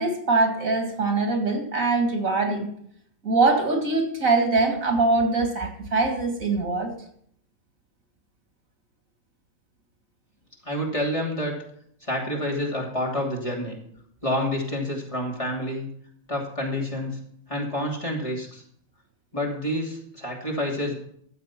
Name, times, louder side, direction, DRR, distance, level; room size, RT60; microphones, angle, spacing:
voice 1, 0.0-2.7 3.2-6.9, right 3 dB, 80° right, 3 dB, 2.6 m, -23 dB
voice 2, 10.6-11.6 12.0-13.7 14.2-15.9 16.3-17.2 17.5-18.6 19.3-21.0, left 1 dB, 25° left, -2 dB, 2.9 m, -28 dB
13.5 x 7.5 x 5.9 m, 0.67 s
omnidirectional pair, 1.4 m